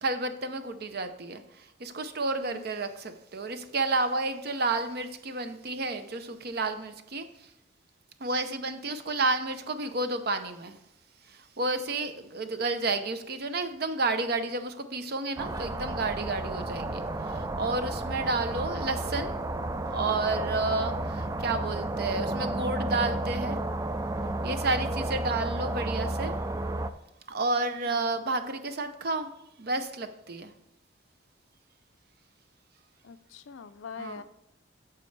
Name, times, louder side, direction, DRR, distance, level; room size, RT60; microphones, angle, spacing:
voice 1, 0.0-7.3 8.2-10.8 11.3-19.3 19.9-23.6 24.4-26.3 27.3-29.3 29.6-30.5 34.0-34.2, right 3 dB, 50° right, 9 dB, 0.7 m, -31 dB
sound 1, 15.4-26.9, right 2 dB, 15° right, 0.3 m, -32 dB
voice 2, 33.0-34.2, left 6 dB, 75° left, 12 dB, 0.5 m, -44 dB
9.4 x 6.9 x 3.3 m, 0.81 s
head